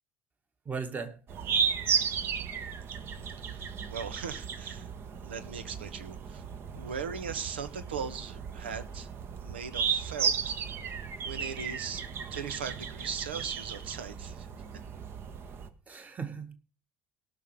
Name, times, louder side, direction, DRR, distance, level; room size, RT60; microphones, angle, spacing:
voice 1, 0.7-1.2 15.9-16.5, right 5 dB, 30° right, 1.9 m, -37 dB
sound 1, 1.3-15.7, right 7 dB, 45° right, 1.3 m, -34 dB
voice 2, 2.8-4.9 5.2-6.4 6.7-9.1 9.4-10.6 11.2-12.0 12.3-14.5, right 6 dB, 75° right, 1.1 m, -39 dB
18.5 x 6.3 x 5.1 m
figure-of-eight pair, 60°, 6 cm